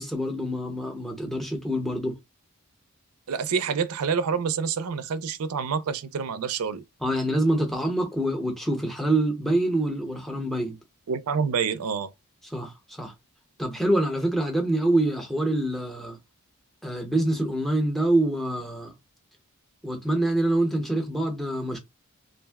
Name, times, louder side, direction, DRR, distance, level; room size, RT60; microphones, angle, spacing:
voice 1, 0.0-2.2 7.0-10.8 12.5-13.1 13.6-16.2 16.8-18.9 19.8-21.8, right 1 dB, ahead, 0.7 m, -25 dB
voice 2, 3.3-6.8 11.1-12.1, right 6 dB, 75° right, 0.4 m, -27 dB
2.5 x 2.1 x 3.4 m
head